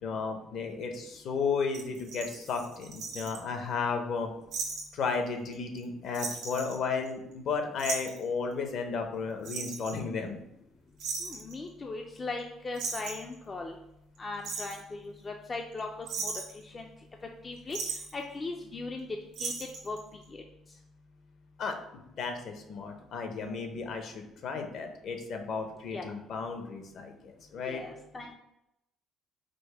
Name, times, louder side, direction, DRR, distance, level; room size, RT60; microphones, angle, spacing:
voice 1, 0.0-4.3 4.9-10.4 21.6-21.8 22.2-27.8, left 5 dB, 50° left, 5 dB, 0.7 m, -34 dB
sound 1, 1.7-3.4 4.5-4.8 5.1-5.2 5.5-5.8 6.1-7.3 7.8-8.2 9.4-10.0 11.0-11.5 12.4-12.5 12.7-13.3 14.1-14.8 15.5-15.8 16.1-16.6 17.7-18.1 19.3-20.0 20.2-20.3, right 4 dB, 85° right, 1.5 m, -37 dB
voice 2, 11.2-13.7 14.2-16.3 16.6-16.9 17.4-19.1 19.4-19.5 19.9-20.0 20.3-20.4 25.9-26.1 27.6-28.4, left 3 dB, 25° left, 2 dB, 0.3 m, -38 dB
5.1 x 2.1 x 4.5 m, 0.85 s
cardioid pair, 155°, 0 cm